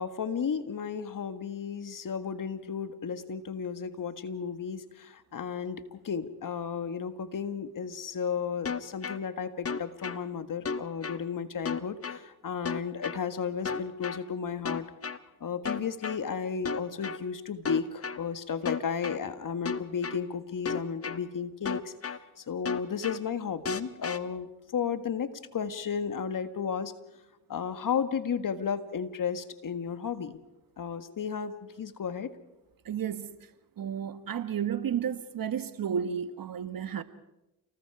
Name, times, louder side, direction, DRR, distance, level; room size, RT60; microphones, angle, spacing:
voice 1, 0.0-14.9 15.4-21.9 22.4-26.9 27.5-30.4 30.8-32.4, left 6 dB, 50° left, 1.7 m, -33 dB
sound 1, 8.7-9.2 9.7-10.2 10.7-11.2 11.7-12.2 12.7-13.2 13.7-14.2 14.7-15.2 15.7-16.2 16.7-17.2 17.7-18.2 18.7-19.2 19.7-20.2 20.7-21.2 21.7-22.2 22.7-23.2 23.7-24.2, left 5 dB, 35° left, 1.2 m, -33 dB
voice 2, 32.8-33.3 33.8-37.0, right 8 dB, 55° right, 1.5 m, -32 dB
29.5 x 19.5 x 4.8 m
supercardioid pair, 55°, 41 cm